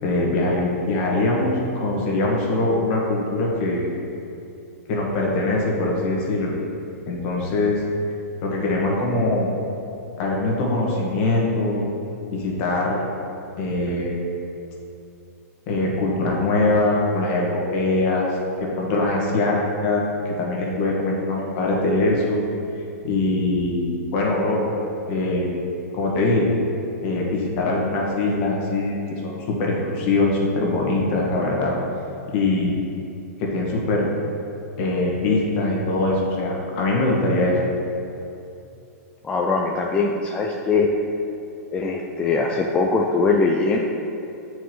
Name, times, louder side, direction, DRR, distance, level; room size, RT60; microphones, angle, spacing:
voice 1, 0.0-3.9 4.9-6.5 7.1-7.8 8.4-9.5 10.2-11.9 12.3-13.0 13.6-14.2 15.7-22.4 23.0-24.6 25.1-25.5 25.9-26.5 27.0-31.8 32.3-32.7 33.4-34.1 34.8-37.6, left 2 dB, 45° left, -2 dB, 1.5 m, -22 dB
voice 2, 39.2-40.9 41.7-43.8, left 4 dB, 15° left, 0 dB, 0.3 m, -21 dB
8.7 x 4.7 x 3.1 m, 2.8 s
hypercardioid pair, 140°, 9 cm